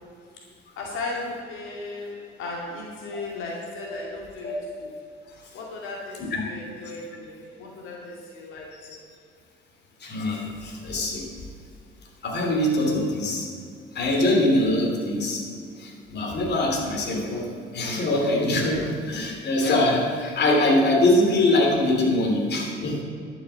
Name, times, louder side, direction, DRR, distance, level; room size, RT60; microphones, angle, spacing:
voice 1, 0.8-4.5 4.8-4.9 5.5-9.0, left 3 dB, 85° left, -3 dB, 2.4 m, -36 dB
voice 2, 10.0-11.3 12.2-13.5 13.9-15.4 15.8-23.0, left 1 dB, 60° left, 0 dB, 2.9 m, -23 dB
11.5 x 6.9 x 8.1 m, 2.3 s
cardioid pair, 90°, 20 cm